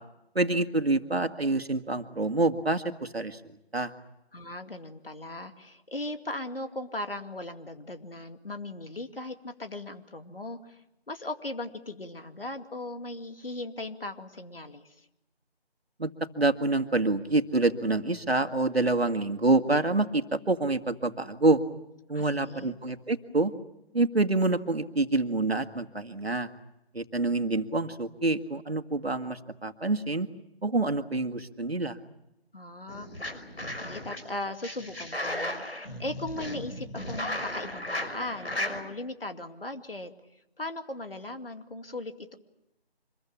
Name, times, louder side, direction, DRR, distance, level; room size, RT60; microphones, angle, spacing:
voice 1, 0.4-3.4 3.7-3.9 16.0-21.6 22.1-23.5 23.9-26.5 26.9-30.3 30.6-32.0, right 2 dB, 70° right, 8 dB, 2.1 m, -27 dB
voice 2, 4.3-15.1 22.1-22.8 32.5-33.3 33.7-40.1 40.6-42.4, left 2 dB, 60° left, 7 dB, 2.5 m, -38 dB
sound 1, 32.9-34.2 34.6-38.8, left 1 dB, 80° left, 5.5 m, -35 dB
26.0 x 22.0 x 8.6 m, 0.87 s
figure-of-eight pair, 160°, 32 cm